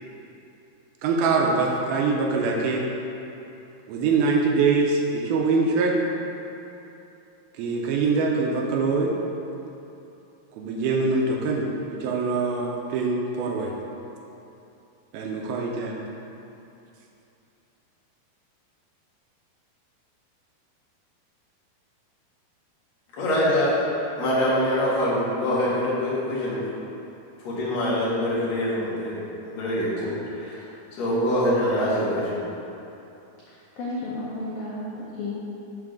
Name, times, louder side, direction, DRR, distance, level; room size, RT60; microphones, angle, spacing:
voice 1, 1.0-2.9 3.9-6.0 7.6-9.1 10.5-13.7 15.1-16.0, right 4 dB, 80° right, 0 dB, 2.4 m, -24 dB
voice 2, 23.2-23.8 24.2-26.6 27.4-29.2 29.5-30.1 30.4-30.7 31.0-32.4, equal, 55° left, -8 dB, 2.2 m, -24 dB
voice 3, 33.5-35.3, left 2 dB, 80° left, -6 dB, 1.7 m, -33 dB
6.6 x 3.6 x 6.3 m, 2.8 s
omnidirectional pair, 4.5 m